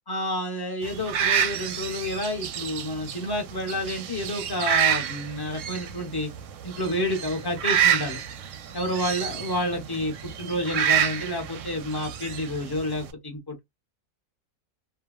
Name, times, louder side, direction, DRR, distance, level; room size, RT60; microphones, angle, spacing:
voice 1, 0.1-6.3 6.6-8.2 8.7-13.6, left 1 dB, 25° left, 0.5 m, -29 dB
sound 1, 0.8-13.1, right 9 dB, 70° right, 0.8 m, -28 dB
2.6 x 2.1 x 2.3 m
omnidirectional pair, 1.7 m